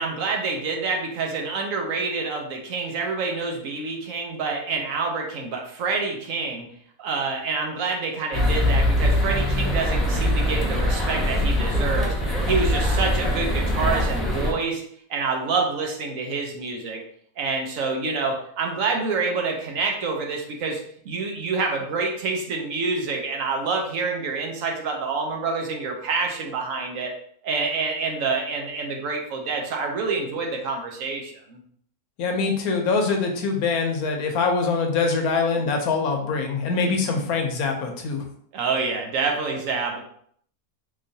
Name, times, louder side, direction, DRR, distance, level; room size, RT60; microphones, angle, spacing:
voice 1, 0.0-6.7 7.0-12.2 12.5-14.8 15.1-17.0 17.4-27.1 27.4-31.6 38.5-40.0, right 4 dB, 65° right, 1 dB, 1.0 m, -27 dB
sound 1, 8.3-14.5, left 1 dB, ahead, 0.4 m, -22 dB
voice 2, 32.2-38.2, left 4 dB, 70° left, 3 dB, 1.0 m, -24 dB
3.9 x 3.0 x 2.7 m, 0.64 s
omnidirectional pair, 1.7 m